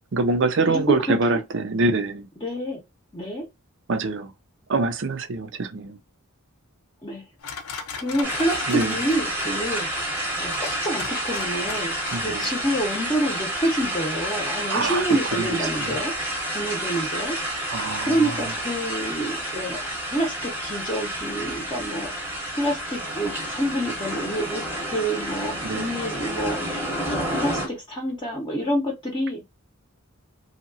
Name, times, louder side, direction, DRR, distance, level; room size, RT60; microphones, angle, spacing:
voice 1, 0.1-2.3 3.9-4.3 4.7-6.0 8.7-9.0 12.1-12.5 14.7-15.0 15.3-15.9 17.7-18.3 25.6-25.9, right 3 dB, 55° right, 0.5 m, -25 dB
voice 2, 0.7-1.1 2.4-2.8 3.1-3.4 7.0-7.2 8.0-9.9 10.4-17.7 18.0-24.6 24.9-29.5, right 1 dB, 20° left, 0.7 m, -28 dB
sound 1, 7.4-12.5, left 5 dB, 75° left, 0.6 m, -38 dB
sound 2, 8.2-27.7, right 1 dB, 10° right, 0.9 m, -29 dB
2.8 x 2.8 x 2.7 m
head